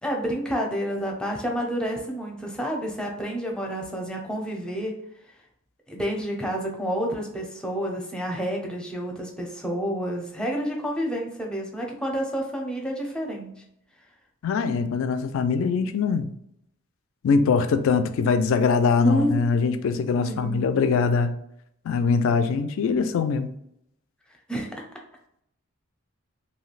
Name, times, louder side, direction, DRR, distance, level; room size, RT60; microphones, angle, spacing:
voice 1, 0.0-4.9 5.9-13.6 19.0-19.5 20.3-20.6 24.5-24.7, equal, 5° left, 0.6 m, -29 dB
voice 2, 14.4-16.3 17.2-21.3 21.9-23.5, left 5 dB, 65° left, 0.3 m, -22 dB
3.1 x 2.7 x 2.4 m
head